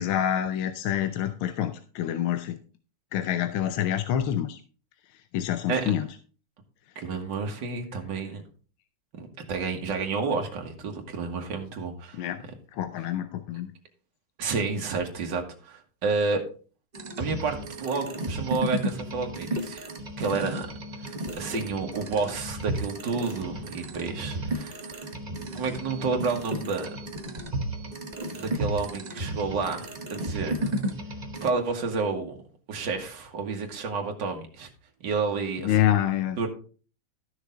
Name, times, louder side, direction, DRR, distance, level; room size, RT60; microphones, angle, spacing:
voice 1, 0.0-2.6 3.1-4.6 5.3-6.1 12.1-12.4 12.7-13.7 35.6-36.4, left 11 dB, 80° left, 10 dB, 1.5 m, -27 dB
voice 2, 7.0-8.4 9.1-12.2 14.4-16.4 17.2-19.9 20.2-20.7 21.0-25.1 25.5-26.9 28.3-30.7 31.4-32.4 32.7-34.7 35.0-35.8 36.4-36.5, right 4 dB, 60° right, 3 dB, 2.2 m, -30 dB
sound 1, 16.9-31.5, right 1 dB, 35° right, 0.7 m, -33 dB
13.0 x 6.5 x 3.8 m, 0.39 s
omnidirectional pair, 2.3 m